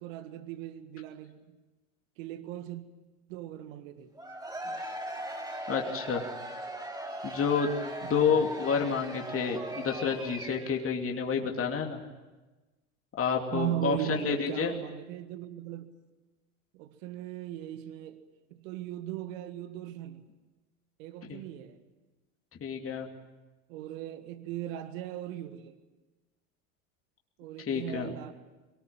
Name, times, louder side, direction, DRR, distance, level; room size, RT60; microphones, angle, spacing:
voice 1, 0.0-1.6 2.2-2.9 3.3-4.1 4.6-4.8 8.0-8.5 13.5-15.9 16.7-18.2 18.5-20.2 21.0-21.8 23.7-25.8 27.4-28.3, right 12 dB, 65° right, 1.8 m, -38 dB
Cheering / Crowd, 4.1-10.9, right 1 dB, 10° right, 2.9 m, -39 dB
voice 2, 5.7-6.2 7.2-12.0 13.2-14.7 21.3-21.4 22.6-23.1 27.7-28.1, left 6 dB, 30° left, 2.8 m, -29 dB
23.0 x 19.0 x 8.9 m
hypercardioid pair, 75°, 42 cm